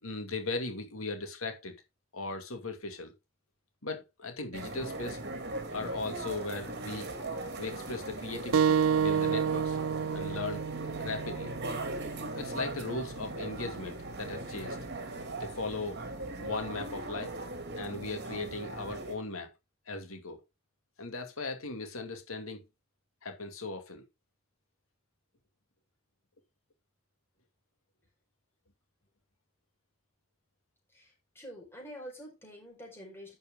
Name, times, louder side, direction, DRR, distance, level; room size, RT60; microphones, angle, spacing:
voice 1, 0.0-1.7 2.1-3.1 3.8-5.2 5.7-7.1 7.6-9.8 10.1-10.6 11.0-11.5 12.3-14.8 15.4-16.1 16.4-17.3 17.7-19.5 19.9-20.4 21.0-22.6 23.2-24.0, left 3 dB, 85° left, 2.4 m, -38 dB
sound 1, 4.5-19.1, right 2 dB, 55° right, 2.3 m, -39 dB
sound 2, 8.5-13.7, right 7 dB, 85° right, 0.4 m, -30 dB
voice 2, 30.9-33.4, equal, 10° left, 4.8 m, -47 dB
11.0 x 6.4 x 3.7 m
head